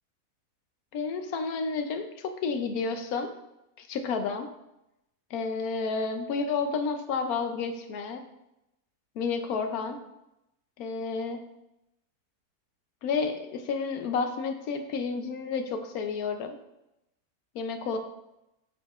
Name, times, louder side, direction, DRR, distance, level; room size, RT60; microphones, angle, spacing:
voice 1, 0.9-3.3 3.8-4.5 5.3-8.2 9.2-10.0 10.8-11.4 13.0-16.6 17.5-18.0, left 4 dB, 70° left, 6 dB, 1.1 m, -31 dB
7.1 x 6.6 x 2.4 m, 0.90 s
omnidirectional pair, 1.7 m